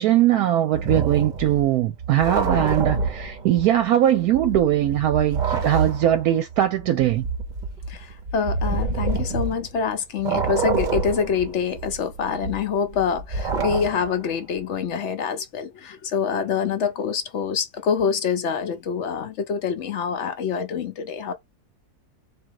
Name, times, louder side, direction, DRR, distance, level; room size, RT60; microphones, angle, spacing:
voice 1, 0.0-7.3, right 12 dB, 75° right, 1.0 m, -20 dB
sound 1, 0.7-3.8 4.2-9.9 10.2-14.3, right 4 dB, 40° right, 0.7 m, -27 dB
voice 2, 7.9-21.3, left 6 dB, 60° left, 0.8 m, -26 dB
3.8 x 2.7 x 4.6 m
omnidirectional pair, 1.7 m